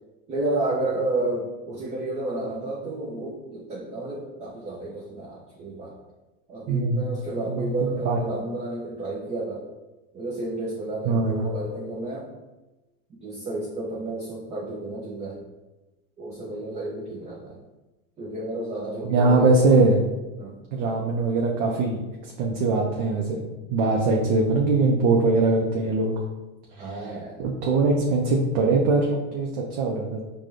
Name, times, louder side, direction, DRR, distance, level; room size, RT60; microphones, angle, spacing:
voice 1, 0.3-5.9 6.5-9.6 10.1-12.3 13.2-15.4 16.2-17.6 18.2-19.6 20.4-20.6 26.8-27.4, right 2 dB, 15° right, -4 dB, 0.4 m, -31 dB
voice 2, 6.7-7.2 7.5-8.2 11.1-11.5 19.0-20.0 20.7-22.0 22.4-23.4 23.7-26.1 26.8-27.0 27.4-30.2, right 3 dB, 55° right, -1 dB, 0.6 m, -22 dB
4.7 x 2.3 x 2.6 m, 1.1 s
supercardioid pair, 110°, 43 cm